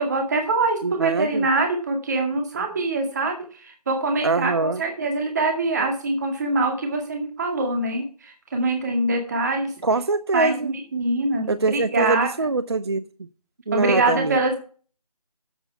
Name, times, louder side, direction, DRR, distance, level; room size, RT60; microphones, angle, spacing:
voice 1, 0.0-9.7 10.3-12.3 13.7-14.6, right 2 dB, 25° right, 3 dB, 2.0 m, -24 dB
voice 2, 0.8-1.5 4.2-4.8 9.8-10.7 11.5-13.1 13.7-14.4, right 3 dB, 45° right, 14 dB, 0.5 m, -23 dB
8.6 x 8.1 x 5.8 m, 0.40 s
figure-of-eight pair, 165°, 20 cm